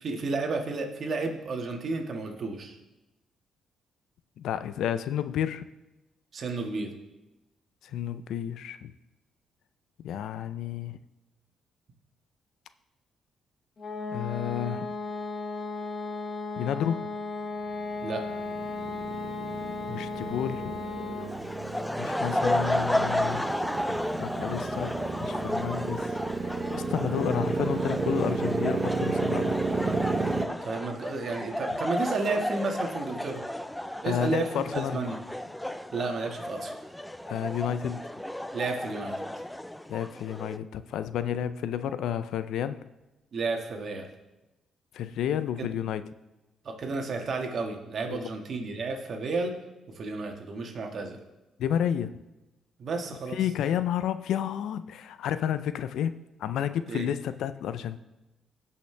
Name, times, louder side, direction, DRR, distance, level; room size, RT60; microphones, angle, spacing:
voice 1, 0.0-2.8 6.3-6.9 18.0-18.2 30.6-33.4 34.0-35.2 35.9-36.7 38.5-39.3 43.3-44.1 45.6-45.7 46.6-49.6 50.0-51.2 52.8-53.4 56.9-57.1, right 3 dB, 50° right, 3 dB, 1.7 m, -32 dB
voice 2, 4.4-5.7 7.8-8.9 10.0-11.0 14.1-14.9 16.6-17.1 19.9-20.8 22.0-23.5 24.2-24.9 25.2-26.2 26.4-29.6 34.0-35.0 37.3-38.1 39.9-42.8 44.9-46.0 48.1-48.3 51.6-52.1 53.3-56.1 56.4-58.0, left 9 dB, 80° left, 13 dB, 0.5 m, -31 dB
sound 1, 13.8-21.5, left 3 dB, 40° left, 2.3 m, -35 dB
Motorcycle, 17.8-30.5, right 3 dB, 35° right, 0.9 m, -32 dB
sound 2, 21.2-40.6, left 1 dB, 5° left, 0.4 m, -33 dB
17.0 x 5.7 x 3.4 m, 1.0 s
cardioid pair, 90°, 0 cm